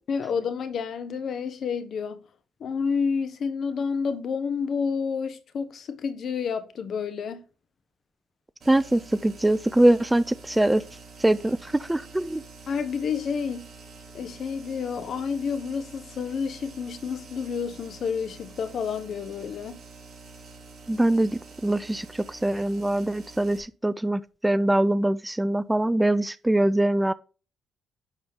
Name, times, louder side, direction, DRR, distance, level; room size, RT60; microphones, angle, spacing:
voice 1, 0.1-2.2 2.6-7.4 12.7-13.7 14.1-19.8, left 6 dB, 60° left, 1.2 m, -29 dB
sound 1, 8.6-23.6, right 3 dB, 45° right, 3.8 m, -47 dB
voice 2, 8.7-10.8 11.2-12.4 20.9-27.1, right 1 dB, 10° right, 0.4 m, -23 dB
10.5 x 4.3 x 3.7 m
cardioid pair, 90°, 0 cm